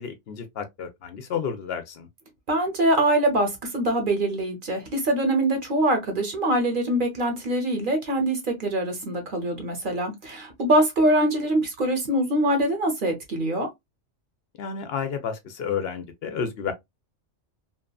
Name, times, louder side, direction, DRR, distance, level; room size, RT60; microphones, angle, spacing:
voice 1, 0.0-2.1 14.6-16.7, left 7 dB, 65° left, 0.7 m, -31 dB
voice 2, 2.5-13.7, right 1 dB, 50° right, 0.9 m, -23 dB
2.8 x 2.4 x 2.2 m
omnidirectional pair, 1.2 m